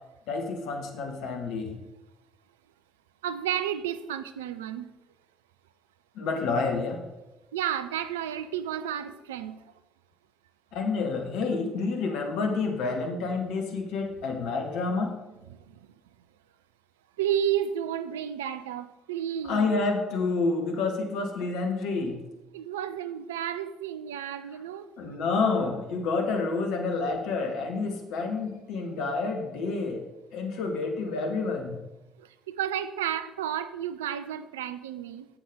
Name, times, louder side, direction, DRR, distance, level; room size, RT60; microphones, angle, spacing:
voice 1, 0.3-1.8 6.1-7.0 10.7-15.1 19.5-22.2 25.0-30.1 30.3-31.8, left 4 dB, 65° left, 3 dB, 1.5 m, -29 dB
voice 2, 3.2-4.9 7.5-9.6 15.5-15.9 17.2-19.7 22.5-24.9 32.2-35.3, right 10 dB, 80° right, 12 dB, 0.6 m, -32 dB
10.5 x 7.8 x 5.1 m, 1.0 s
figure-of-eight pair, 50°, 0 cm